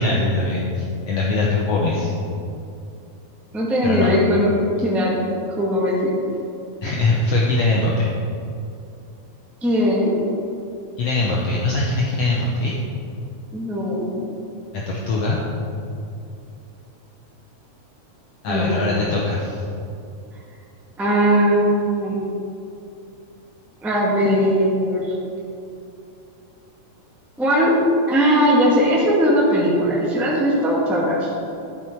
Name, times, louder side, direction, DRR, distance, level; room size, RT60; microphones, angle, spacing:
voice 1, 0.0-2.1 3.8-4.1 6.8-8.1 11.0-12.7 14.7-15.4 18.4-19.6, left 2 dB, 65° left, -3 dB, 1.7 m, -21 dB
voice 2, 3.5-5.1 5.6-6.1 9.6-10.1 13.5-14.1 18.5-18.7 21.0-22.2 23.8-25.1 27.4-27.7 28.1-31.3, equal, ahead, -6 dB, 1.3 m, -19 dB
11.5 x 8.2 x 4.6 m, 2.6 s
omnidirectional pair, 3.5 m